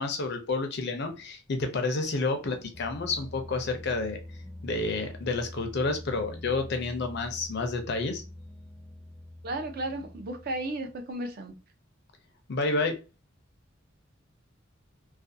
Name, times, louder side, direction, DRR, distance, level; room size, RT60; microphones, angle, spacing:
voice 1, 0.0-4.2 4.6-8.2 12.5-13.0, left 3 dB, 55° left, 0.5 m, -30 dB
sound 1, 2.2-11.0, left 1 dB, ahead, 0.6 m, -45 dB
voice 2, 9.4-11.5, right 1 dB, 50° right, 0.5 m, -34 dB
2.4 x 2.2 x 2.6 m
head